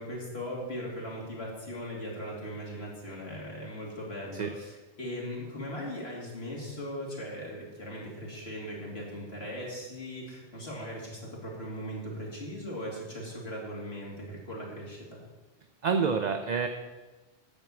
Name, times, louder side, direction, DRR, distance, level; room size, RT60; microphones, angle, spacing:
voice 1, 0.0-15.2, equal, 70° left, -3 dB, 3.0 m, -39 dB
voice 2, 15.8-16.7, right 5 dB, 45° right, 6 dB, 0.7 m, -27 dB
12.0 x 4.6 x 8.4 m, 1.2 s
omnidirectional pair, 1.1 m